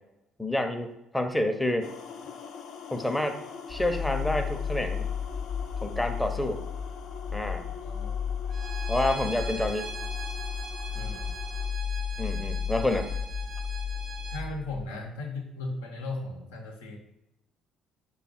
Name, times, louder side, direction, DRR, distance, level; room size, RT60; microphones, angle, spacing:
voice 1, 0.4-1.9 2.9-3.4 3.7-5.1 5.8-6.6 7.3-7.6 8.9-9.9 12.2-13.1, left 1 dB, 10° left, 6 dB, 0.6 m, -28 dB
sound 1, 1.8-11.7, left 6 dB, 65° left, 0.4 m, -44 dB
sound 2, 3.7-14.8, left 7 dB, 40° left, 0.8 m, -33 dB
Bowed string instrument, 8.5-14.4, right 4 dB, 65° right, 0.6 m, -41 dB
voice 2, 10.9-11.4 14.3-17.0, left 2 dB, 85° left, 0 dB, 0.8 m, -37 dB
5.4 x 2.3 x 4.2 m, 0.88 s
hypercardioid pair, 55°, 0 cm